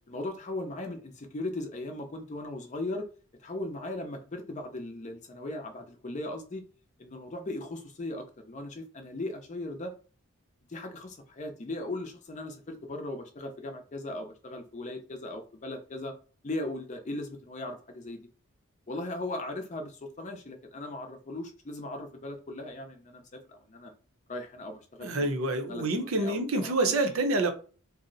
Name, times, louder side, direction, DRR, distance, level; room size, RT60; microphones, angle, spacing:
voice 1, 0.0-3.1 3.4-6.6 7.0-9.9 10.7-16.1 16.4-18.3 18.9-23.9 24.3-25.4 25.7-27.0, left 2 dB, 35° left, 0.5 m, -38 dB
voice 2, 25.0-27.5, right 2 dB, 70° right, 0.6 m, -27 dB
2.6 x 2.0 x 3.8 m
head